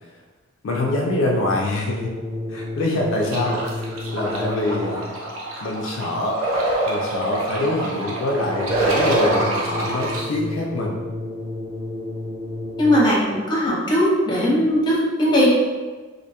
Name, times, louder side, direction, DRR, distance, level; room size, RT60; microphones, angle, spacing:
voice 1, 0.6-2.1 2.5-5.1 5.6-11.0, left 2 dB, 65° left, -1 dB, 0.3 m, -25 dB
sound 1, 1.9-5.3 8.3-13.3, left 2 dB, 45° right, 0.8 m, -31 dB
sound 2, 3.3-10.2, right 1 dB, 85° right, 0.6 m, -25 dB
voice 2, 12.8-15.5, equal, 20° left, -5 dB, 0.6 m, -19 dB
2.5 x 2.2 x 2.8 m, 1.3 s
head